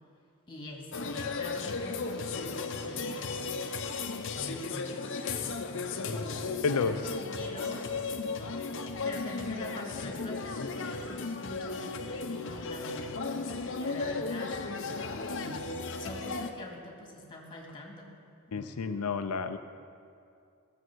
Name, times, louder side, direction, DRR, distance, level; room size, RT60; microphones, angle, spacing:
voice 1, 0.5-3.8 4.3-7.9 8.3-8.6 9.0-14.9 15.3-15.7 16.0-18.1 18.5-18.7, left 1 dB, 20° left, 0 dB, 2.1 m, -45 dB
sound 1, 0.9-16.5, left 4 dB, 60° left, 0.8 m, -35 dB
voice 2, 6.6-7.0 18.5-19.6, left 5 dB, 90° left, 8 dB, 0.5 m, -30 dB
17.0 x 7.5 x 6.2 m, 2.5 s
head